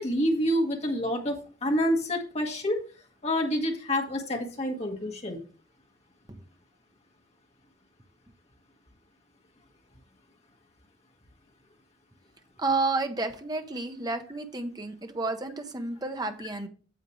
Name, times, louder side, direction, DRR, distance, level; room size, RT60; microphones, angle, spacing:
voice 1, 0.0-1.4 1.6-2.8 3.2-5.4, equal, 35° left, 1 dB, 1.8 m, -27 dB
voice 2, 12.6-16.7, right 3 dB, 20° right, 7 dB, 0.8 m, -31 dB
9.3 x 7.3 x 3.2 m, 0.39 s
head